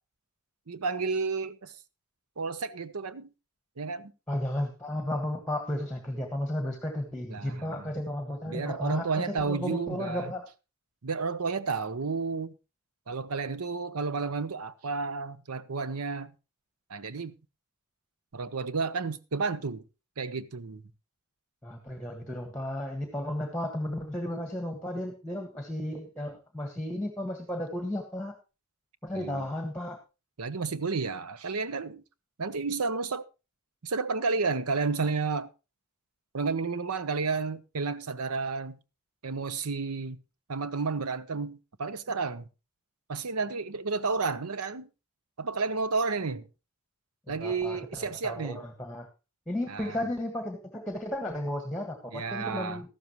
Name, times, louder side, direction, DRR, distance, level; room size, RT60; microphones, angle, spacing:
voice 1, 0.7-1.7 2.4-3.3 3.8-4.1 7.3-7.9 8.4-10.3 11.0-12.5 13.1-16.3 16.9-17.3 18.3-19.8 20.2-20.8 29.1-29.5 30.4-32.0 32.4-33.2 33.8-35.5 36.3-38.8 39.2-40.2 40.5-42.5 43.1-44.9 45.4-46.5 47.3-48.6 49.7-50.0 52.1-52.8, right 4 dB, 85° right, 0.8 m, -31 dB
voice 2, 4.3-10.5 21.6-28.3 29.0-30.0 47.3-49.1 49.5-52.9, left 1 dB, 5° left, 1.6 m, -34 dB
13.5 x 12.5 x 3.0 m
head